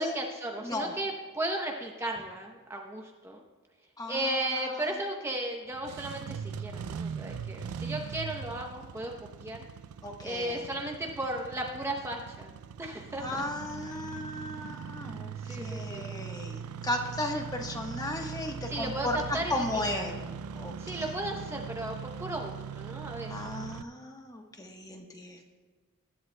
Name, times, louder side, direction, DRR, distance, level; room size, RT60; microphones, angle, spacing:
voice 1, 0.0-3.4 4.1-9.1 9.4-9.6 10.2-12.5 12.8-13.4 15.4-16.0 18.7-20.0 20.8-23.4, right 1 dB, 10° right, 1 dB, 0.8 m, -35 dB
voice 2, 4.0-4.8 10.0-10.6 13.2-19.2 19.5-20.3 20.5-20.7 23.3-25.4, left 1 dB, 15° left, 2 dB, 1.2 m, -35 dB
Engine starting, 5.7-23.8, right 7 dB, 90° right, 0.4 m, -40 dB
23.0 x 11.0 x 2.2 m, 1.4 s
head